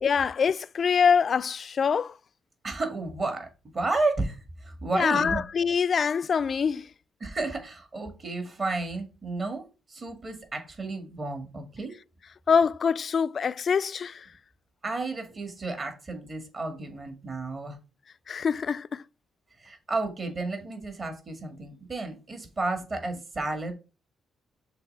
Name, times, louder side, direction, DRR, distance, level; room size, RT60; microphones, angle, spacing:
voice 1, 0.0-2.1 4.9-6.9 12.5-14.3 18.3-19.0, left 6 dB, 45° left, 0.3 m, -24 dB
voice 2, 2.6-5.4 7.2-11.9 14.8-17.8 19.6-23.7, right 3 dB, 35° right, 1.9 m, -32 dB
6.7 x 3.3 x 5.4 m
cardioid pair, 90°, 0 cm